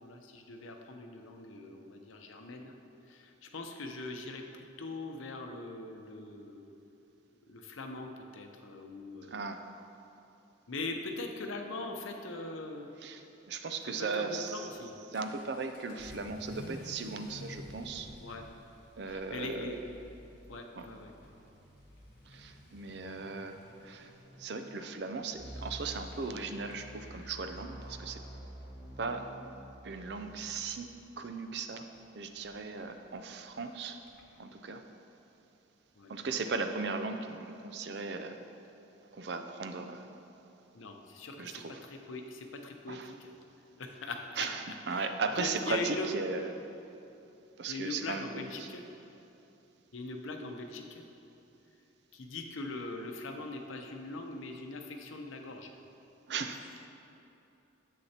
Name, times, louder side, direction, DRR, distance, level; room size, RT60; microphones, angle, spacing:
voice 1, 0.0-2.7 3.1-6.8 7.5-9.4 10.7-12.9 14.0-14.9 18.2-18.4 19.1-19.8 20.5-21.1 36.0-36.1 40.7-43.3 43.8-44.5 44.9-45.1 45.4-46.1 47.7-48.8 49.9-51.0 52.1-55.7, left 2 dB, 90° left, 4 dB, 0.7 m, -41 dB
voice 2, 9.3-9.6 13.0-14.7 15.1-18.1 19.0-19.8 20.8-20.9 22.3-24.1 24.4-28.2 29.0-29.3 29.8-30.9 31.2-31.8 32.1-34.0 34.4-34.8 36.1-38.4 39.1-40.1 41.4-41.8 42.9-43.1 44.4-46.4 47.6-48.7 56.3-56.6, right 4 dB, 60° right, 7 dB, 0.4 m, -37 dB
Vehicle / Accelerating revving vroom, 14.6-34.4, left 1 dB, 45° left, 0.9 m, -54 dB
sound 1, 25.3-32.1, right 1 dB, 70° left, 1.4 m, -48 dB
9.7 x 7.5 x 2.9 m, 2.8 s
head